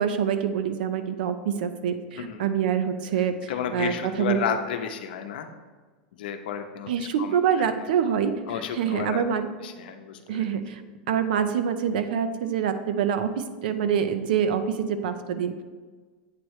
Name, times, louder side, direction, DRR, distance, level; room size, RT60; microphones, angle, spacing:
voice 1, 0.0-4.4 6.9-8.3 8.8-9.5 10.3-10.8 11.1-15.6, right 8 dB, 75° right, 10 dB, 0.6 m, -26 dB
voice 2, 3.5-5.5 6.2-7.7 8.5-10.6, left 8 dB, 80° left, 6 dB, 0.7 m, -32 dB
8.4 x 3.1 x 4.7 m, 1.4 s
supercardioid pair, 150°, 5 cm